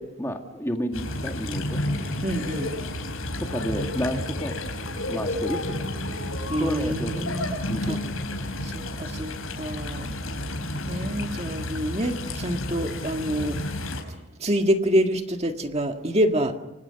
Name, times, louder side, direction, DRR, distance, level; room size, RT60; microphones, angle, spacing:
voice 1, 0.0-1.8 3.4-4.6 5.1-5.9 6.6-7.3 7.7-8.1 8.4-8.8 10.0-10.2, equal, 10° left, 3 dB, 2.1 m, -31 dB
sound 1, 0.9-14.0, left 1 dB, 75° left, 5.2 m, -31 dB
voice 2, 2.2-2.7 6.5-7.6 7.9-8.0 8.7-10.1 10.9-13.6 14.4-16.5, equal, 30° right, 5 dB, 1.8 m, -26 dB
30.0 x 25.0 x 5.8 m, 1.0 s
head